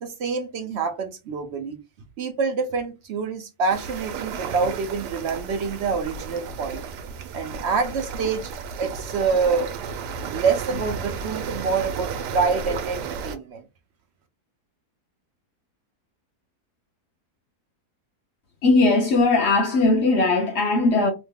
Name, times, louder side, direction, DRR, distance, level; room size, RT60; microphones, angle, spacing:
voice 1, 0.0-1.8 2.2-6.8 7.3-8.5 8.8-9.7 10.2-13.6, right 5 dB, 75° right, 0.6 m, -26 dB
sound 1, 3.7-13.4, right 6 dB, 90° right, 1.2 m, -33 dB
voice 2, 18.6-21.1, left 3 dB, 60° left, 0.7 m, -19 dB
3.0 x 2.2 x 3.4 m
omnidirectional pair, 1.7 m